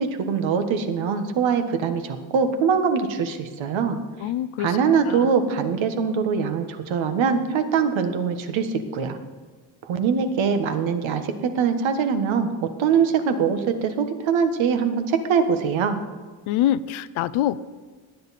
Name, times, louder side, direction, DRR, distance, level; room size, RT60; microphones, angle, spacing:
voice 1, 0.0-4.0 4.6-9.2 9.8-16.0, right 6 dB, 70° right, 7 dB, 1.6 m, -23 dB
voice 2, 4.2-4.8 5.0-5.3 16.5-17.6, left 12 dB, 80° left, 16 dB, 0.7 m, -25 dB
18.0 x 10.5 x 4.3 m, 1.4 s
cardioid pair, 150°, 48 cm